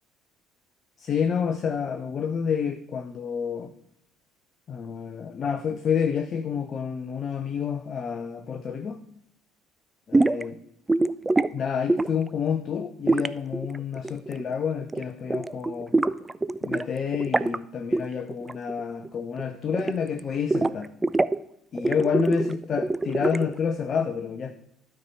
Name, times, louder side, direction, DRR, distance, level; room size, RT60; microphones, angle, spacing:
voice 1, 1.0-3.7 4.7-9.0 10.1-10.6 11.5-15.9 16.6-20.9 21.7-24.5, left 7 dB, 40° left, 8 dB, 0.6 m, -29 dB
sound 1, 10.1-10.4 10.9-11.5 11.9-12.3 13.1-14.5 14.8-15.0 15.3-16.9 17.1-17.6 17.9-18.1 18.3-18.8 19.1-20.2 20.5-21.4 21.8-23.6, right 2 dB, 15° right, 0.3 m, -24 dB
12.0 x 4.6 x 5.4 m, 0.76 s
figure-of-eight pair, 55°, 0 cm